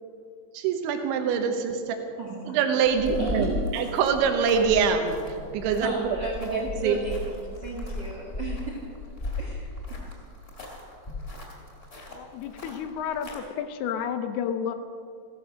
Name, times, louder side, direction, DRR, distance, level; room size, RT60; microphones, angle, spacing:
voice 1, 0.5-2.0 2.5-6.2 6.5-7.0, right 6 dB, 90° right, 5 dB, 3.5 m, -25 dB
voice 2, 2.2-2.6 3.2-3.7 5.8-8.8 9.4-10.0, right 4 dB, 60° right, -2 dB, 1.1 m, -35 dB
sound 1, 2.8-13.4, left 2 dB, 20° left, 2.9 m, -37 dB
voice 3, 12.1-14.7, left 8 dB, 80° left, 9 dB, 2.4 m, -31 dB
16.0 x 14.5 x 6.3 m, 2.4 s
omnidirectional pair, 5.2 m